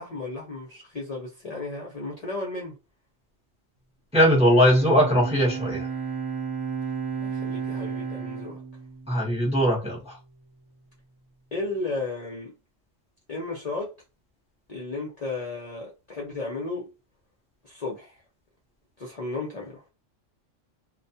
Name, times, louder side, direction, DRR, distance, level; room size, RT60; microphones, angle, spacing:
voice 1, 0.0-2.7 7.2-8.6 11.5-12.5 13.3-13.9 14.7-16.9 17.6-18.2 19.0-19.8, left 3 dB, 45° left, 0.5 m, -34 dB
voice 2, 4.1-5.9 9.1-10.1, equal, 5° right, 0.6 m, -20 dB
Bowed string instrument, 4.2-9.6, right 6 dB, 90° right, 1.1 m, -33 dB
2.3 x 2.2 x 2.6 m
omnidirectional pair, 1.3 m